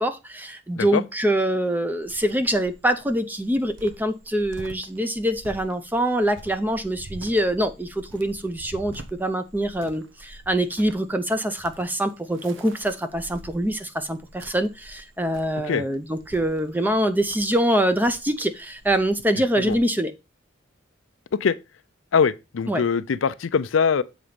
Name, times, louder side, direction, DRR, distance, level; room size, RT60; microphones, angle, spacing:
voice 1, 0.0-20.1 22.7-22.8, right 1 dB, 10° right, 0.6 m, -24 dB
Cricket, 2.0-19.8, right 2 dB, 75° right, 0.9 m, -46 dB
voice 2, 22.1-24.0, left 6 dB, 75° left, 0.5 m, -22 dB
7.3 x 4.0 x 5.0 m
head